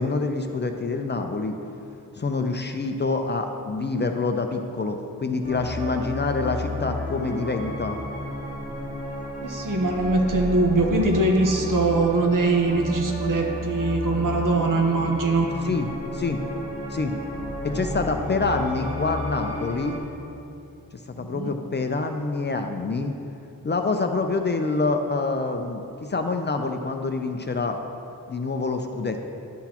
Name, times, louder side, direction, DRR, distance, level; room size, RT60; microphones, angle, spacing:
voice 1, 0.0-1.6 2.2-8.0 15.6-16.4 16.9-17.1 17.6-20.0 21.1-23.1 23.6-27.8 28.3-29.3, left 3 dB, 30° left, 5 dB, 0.4 m, -26 dB
sound 1, 5.4-20.0, left 1 dB, 25° right, 1.4 m, -32 dB
voice 2, 9.4-15.5 17.7-17.8 21.2-21.5, right 2 dB, 65° right, 2 dB, 0.9 m, -22 dB
11.0 x 5.9 x 2.9 m, 2.7 s
wide cardioid pair, 120°, 35 cm